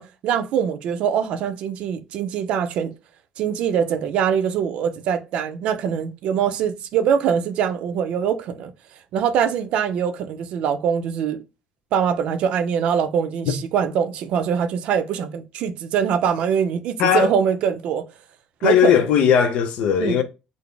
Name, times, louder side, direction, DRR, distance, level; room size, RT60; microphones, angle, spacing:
voice 1, 0.0-2.9 3.4-8.7 9.1-11.4 11.9-18.0 18.6-18.9 20.0-20.2, right 8 dB, 65° right, 0.5 m, -23 dB
voice 2, 17.0-17.3 18.6-20.2, left 8 dB, 70° left, 0.6 m, -18 dB
3.9 x 2.0 x 3.2 m
cardioid pair, 125°, 2 cm